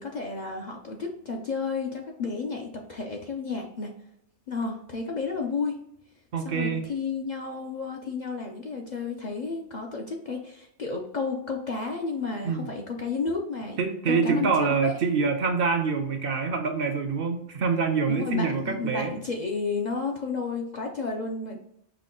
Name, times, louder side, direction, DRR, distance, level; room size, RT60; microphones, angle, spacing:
voice 1, 0.0-3.9 4.5-5.8 6.4-13.8 14.1-14.9 18.1-21.6, left 4 dB, 50° left, 1 dB, 0.5 m, -32 dB
voice 2, 6.3-6.8 12.4-12.6 13.8-19.2, right 5 dB, 60° right, 5 dB, 0.7 m, -25 dB
5.8 x 2.2 x 3.7 m, 0.75 s
omnidirectional pair, 1.2 m